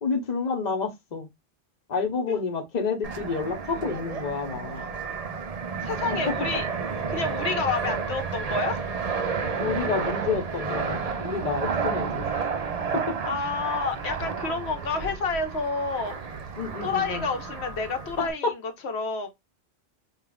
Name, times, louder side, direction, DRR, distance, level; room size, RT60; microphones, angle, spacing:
voice 1, 0.0-1.3 1.9-4.9 9.6-12.3 16.6-17.3 18.2-18.3, left 5 dB, 45° left, 1.0 m, -29 dB
Fixed-wing aircraft airplane, 3.0-18.3, right 5 dB, 45° right, 0.6 m, -31 dB
voice 2, 5.8-6.7 7.1-8.8 13.2-16.2 16.8-19.3, left 4 dB, 90° left, 1.0 m, -29 dB
5.1 x 2.5 x 2.3 m
omnidirectional pair, 1.1 m